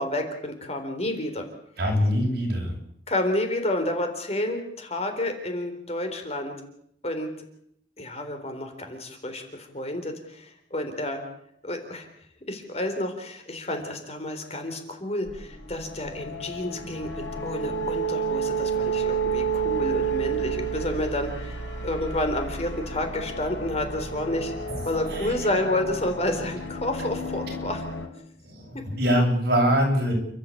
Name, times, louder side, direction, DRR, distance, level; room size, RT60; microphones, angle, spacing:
voice 1, 0.0-1.5 3.1-6.5 7.0-7.3 8.0-11.2 11.6-12.1 12.5-21.6 21.8-24.5 24.8-27.8, left 1 dB, 35° left, 5 dB, 3.9 m, -30 dB
voice 2, 1.8-2.7 24.7-25.3 28.4-30.1, equal, 55° right, 1 dB, 8.0 m, -24 dB
sound 1, 15.3-28.1, right 4 dB, 90° left, 5.3 m, -31 dB
30.0 x 13.5 x 8.5 m, 0.72 s
head